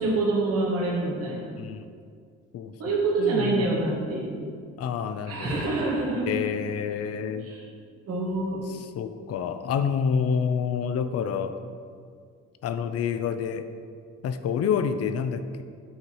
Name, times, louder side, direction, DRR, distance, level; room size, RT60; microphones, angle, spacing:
voice 1, 0.0-1.5 2.8-4.3 5.3-6.3 7.4-7.6 8.1-8.6, right 2 dB, 50° right, -5 dB, 1.5 m, -26 dB
voice 2, 2.5-3.6 4.8-5.6 6.3-7.5 8.7-11.6 12.6-13.6 14.2-15.6, left 7 dB, 55° left, 10 dB, 0.5 m, -28 dB
8.0 x 2.8 x 4.7 m, 2.2 s
cardioid pair, 90°, 30 cm